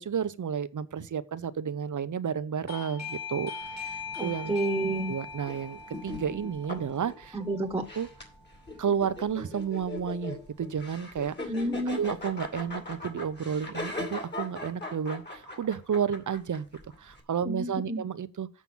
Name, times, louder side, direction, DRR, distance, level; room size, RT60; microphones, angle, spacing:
voice 1, 0.0-3.5 3.8-4.7 5.1-7.4 7.8-8.1 8.8-11.5 11.9-16.7 17.0-18.5, right 7 dB, 90° right, 0.7 m, -32 dB
Doorbell, 2.7-9.2, left 5 dB, 60° left, 1.5 m, -41 dB
sound 1, 3.6-17.2, left 2 dB, 35° left, 2.7 m, -41 dB
voice 2, 4.2-5.1 7.3-7.8 11.5-12.0 17.4-18.0, right 1 dB, 10° right, 1.3 m, -30 dB
7.3 x 5.8 x 7.1 m
wide cardioid pair, 85°, 29 cm